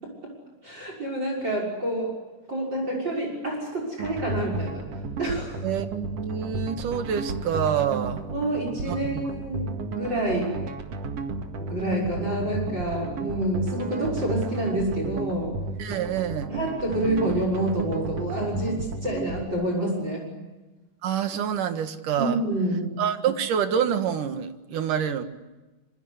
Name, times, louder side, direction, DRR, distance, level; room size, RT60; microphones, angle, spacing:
voice 1, 0.0-0.3 0.6-2.1 2.5-4.8 5.2-5.6 8.3-10.6 11.6-15.6 16.5-20.3 22.2-23.0, right 1 dB, 35° right, 1 dB, 6.8 m, -28 dB
sound 1, 4.0-19.4, right 2 dB, 55° right, 2.8 m, -33 dB
voice 2, 5.6-8.2 8.9-9.2 15.8-16.5 21.0-22.4 23.0-25.2, right 8 dB, 90° right, 8 dB, 3.2 m, -27 dB
26.0 x 25.5 x 8.3 m, 1.1 s
omnidirectional pair, 3.6 m